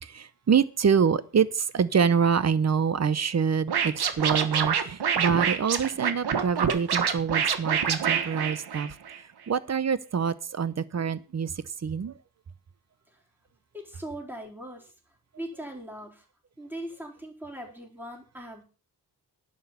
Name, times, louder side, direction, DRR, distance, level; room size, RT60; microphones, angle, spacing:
voice 1, 0.0-9.0 9.5-11.5 11.8-12.1, right 6 dB, 40° right, 0.9 m, -26 dB
Scratching (performance technique), 3.7-9.2, right 7 dB, 80° right, 1.5 m, -26 dB
voice 2, 13.7-16.3 16.6-18.6, right 1 dB, 5° right, 4.2 m, -40 dB
11.5 x 6.5 x 8.2 m
wide cardioid pair, 125°, 38 cm